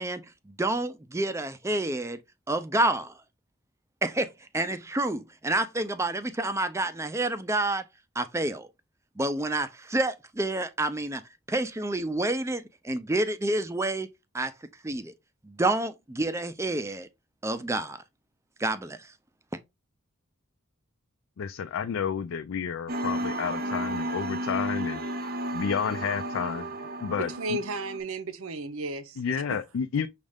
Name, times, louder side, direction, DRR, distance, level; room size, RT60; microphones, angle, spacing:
voice 1, 0.0-2.2 2.5-3.2 4.0-7.8 8.2-8.7 9.2-11.2 11.5-14.1 14.3-14.5 14.8-15.1 15.4-17.1 17.4-18.0 18.6-19.1, right 2 dB, 15° right, 0.4 m, -29 dB
voice 2, 21.4-26.7 27.0-27.6 29.2-30.1, left 7 dB, 70° left, 0.4 m, -31 dB
sound 1, 22.9-28.0, right 1 dB, 45° right, 0.7 m, -33 dB
voice 3, 27.2-29.2 29.5-29.6, right 2 dB, 80° right, 0.7 m, -34 dB
6.3 x 2.4 x 3.4 m
head